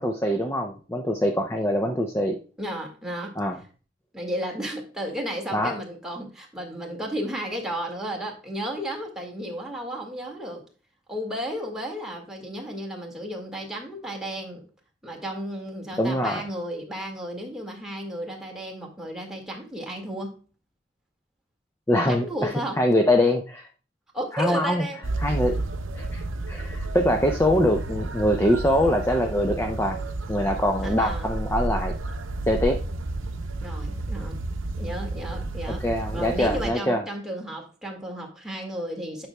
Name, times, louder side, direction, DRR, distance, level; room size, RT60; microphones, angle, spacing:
voice 1, 0.0-2.4 3.4-3.6 5.5-5.8 16.0-16.4 21.9-22.5 22.8-23.7 24.3-24.9 25.2-25.6 25.9-26.2 26.5-30.0 30.3-31.9 32.5-32.8 35.8-37.0, left 1 dB, 15° left, 3 dB, 0.6 m, -23 dB
voice 2, 2.6-3.4 4.1-10.6 11.1-14.6 15.0-20.3 22.1-22.8 24.1-25.0 30.8-31.3 33.6-34.4 34.8-35.8 36.1-39.3, equal, 5° right, 0 dB, 1.8 m, -33 dB
sound 1, 25.0-36.7, right 2 dB, 80° right, 0.7 m, -31 dB
9.5 x 6.0 x 2.2 m, 0.37 s
head